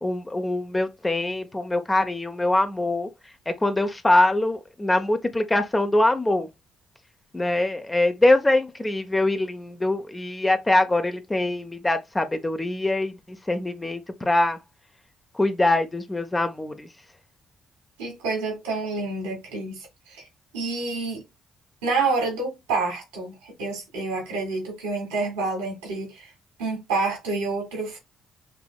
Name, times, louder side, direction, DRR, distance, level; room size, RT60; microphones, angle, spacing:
voice 1, 0.0-3.1 3.5-6.5 7.3-14.6 15.4-16.9, left 2 dB, 20° left, 1.0 m, -23 dB
voice 2, 18.0-20.2 20.5-21.2 21.8-26.3 26.6-28.0, right 3 dB, 90° right, 1.9 m, -28 dB
5.4 x 2.9 x 2.3 m
hypercardioid pair, 50°, 0 cm